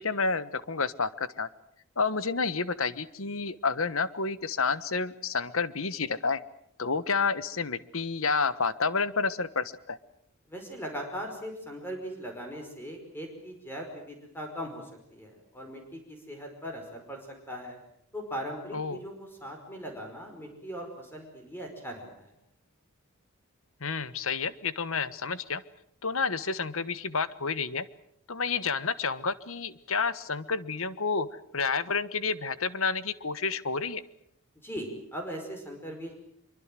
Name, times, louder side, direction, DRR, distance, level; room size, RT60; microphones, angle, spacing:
voice 1, 0.0-1.5 2.0-6.4 6.8-10.0 18.7-19.0 23.8-25.6 26.0-27.8 28.3-31.3 31.5-34.0, left 4 dB, 65° left, 15 dB, 1.3 m, -30 dB
voice 2, 10.5-17.2 17.5-17.8 18.1-22.3 34.6-36.2, equal, 10° left, 3 dB, 5.1 m, -39 dB
25.0 x 24.0 x 7.7 m, 0.70 s
head